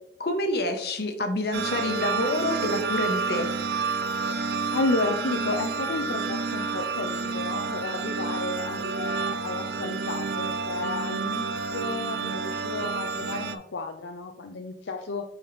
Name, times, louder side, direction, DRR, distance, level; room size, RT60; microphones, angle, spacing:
voice 1, 0.2-3.5, left 1 dB, 55° left, 5 dB, 1.1 m, -27 dB
sound 1, 1.5-13.5, right 4 dB, 60° right, 0.6 m, -30 dB
voice 2, 4.7-15.2, left 2 dB, 75° left, 4 dB, 0.6 m, -32 dB
8.9 x 4.2 x 3.3 m, 0.74 s
head